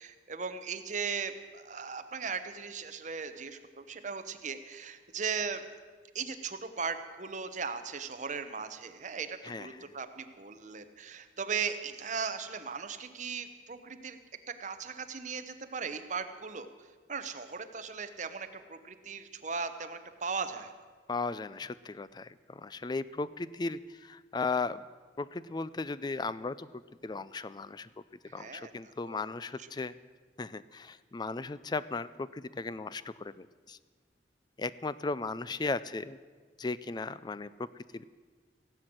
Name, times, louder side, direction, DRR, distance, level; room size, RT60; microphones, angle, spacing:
voice 1, 0.0-5.6 6.1-14.2 14.5-20.7 28.3-29.3 29.6-29.7, right 5 dB, 45° right, 9 dB, 0.9 m, -38 dB
voice 2, 9.4-9.9 21.1-24.8 25.2-27.9 28.3-29.9 30.4-33.8 34.6-36.2 36.6-37.7 37.9-38.1, left 3 dB, 25° left, 16 dB, 0.4 m, -36 dB
17.0 x 7.9 x 7.7 m, 1.5 s
head